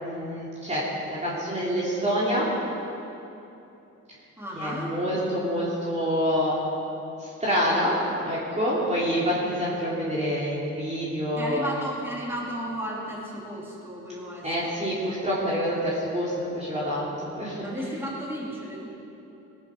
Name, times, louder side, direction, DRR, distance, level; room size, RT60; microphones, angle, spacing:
voice 1, 0.0-2.5 4.5-6.6 7.2-7.9 8.2-11.7 14.4-17.6, equal, 25° right, -8 dB, 3.3 m, -27 dB
voice 2, 4.4-4.9 11.4-14.9 17.6-18.9, equal, 10° right, -5 dB, 3.9 m, -34 dB
19.5 x 10.5 x 5.0 m, 2.9 s
cardioid pair, 90°, 30 cm